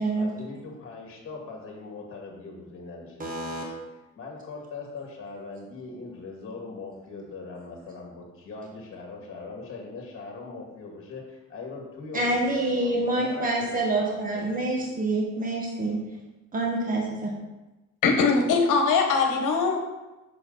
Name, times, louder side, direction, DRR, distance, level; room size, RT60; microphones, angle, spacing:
voice 1, 0.2-3.6 4.2-14.9, left 3 dB, 45° left, 0 dB, 2.2 m, -40 dB
voice 2, 3.2-3.6 12.1-16.0 16.5-17.3, right 2 dB, 25° right, -2 dB, 1.4 m, -27 dB
voice 3, 18.0-19.8, left 4 dB, 75° left, 3 dB, 1.3 m, -21 dB
7.1 x 6.5 x 4.0 m, 1.1 s
cardioid pair, 150°, 31 cm